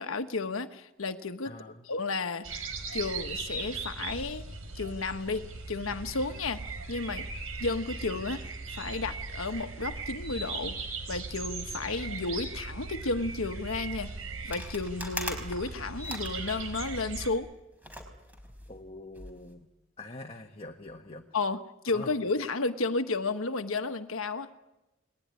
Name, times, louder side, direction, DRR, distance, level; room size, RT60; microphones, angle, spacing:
voice 1, 0.0-1.5 1.9-2.6 2.9-4.4 4.7-6.6 6.9-7.3 7.6-10.8 11.1-14.1 14.5-17.5 21.3-24.5, left 3 dB, 85° left, 7 dB, 1.3 m, -32 dB
voice 2, 1.4-1.8 18.7-19.7 20.0-21.3 21.9-22.2, left 2 dB, 30° left, 2 dB, 1.6 m, -44 dB
sound 1, 2.4-17.3, right 4 dB, 85° right, 4.6 m, -38 dB
sound 2, 14.5-17.1 17.8-19.5, equal, 10° right, 4.6 m, -41 dB
29.5 x 20.5 x 9.7 m, 1.0 s
head